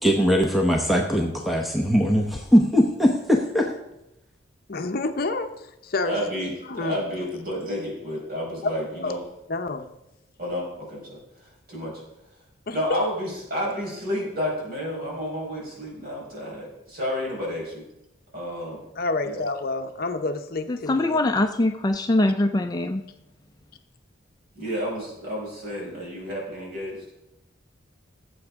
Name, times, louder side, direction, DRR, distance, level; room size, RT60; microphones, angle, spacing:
voice 1, 0.0-3.7, equal, ahead, 1 dB, 0.8 m, -20 dB
voice 2, 4.7-6.2 6.7-7.0 9.0-9.1 9.5-9.9 12.7-13.0 19.0-21.2, left 3 dB, 50° left, 7 dB, 0.7 m, -29 dB
voice 3, 6.0-9.2 10.4-11.2 11.7-12.0 12.7-17.8 18.3-18.8 19.2-19.4 24.5-27.0, equal, 50° right, -3 dB, 4.8 m, -31 dB
voice 4, 20.7-23.0, left 2 dB, 20° left, 6 dB, 0.4 m, -23 dB
17.0 x 7.8 x 3.6 m, 0.89 s
head